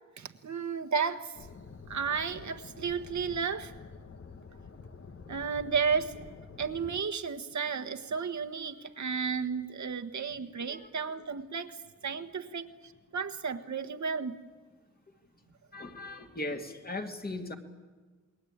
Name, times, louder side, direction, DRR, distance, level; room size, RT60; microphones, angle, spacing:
voice 1, 0.2-1.3 1.9-3.7 5.3-6.1 6.6-11.8 12.0-14.4, right 5 dB, 70° right, 8 dB, 1.5 m, -33 dB
sound 1, 1.3-7.0, left 4 dB, 50° left, 1.3 m, -48 dB
voice 2, 15.7-17.6, left 2 dB, 30° left, 4 dB, 2.4 m, -38 dB
28.0 x 22.0 x 8.8 m, 1.4 s
wide cardioid pair, 135°, 30 cm